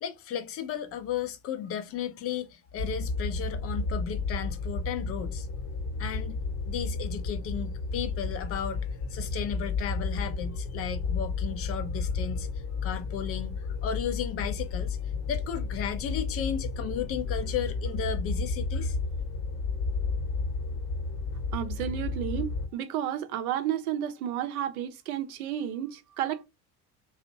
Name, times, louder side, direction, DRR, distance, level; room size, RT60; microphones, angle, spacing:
voice 1, 0.0-5.5 6.0-6.4 6.7-12.5 12.8-19.0, left 8 dB, 35° left, 0.4 m, -34 dB
sound 1, 2.8-22.7, left 4 dB, 50° left, 0.8 m, -32 dB
voice 2, 21.5-26.4, right 10 dB, 70° right, 0.6 m, -32 dB
2.5 x 2.1 x 2.6 m
figure-of-eight pair, 60°, 45 cm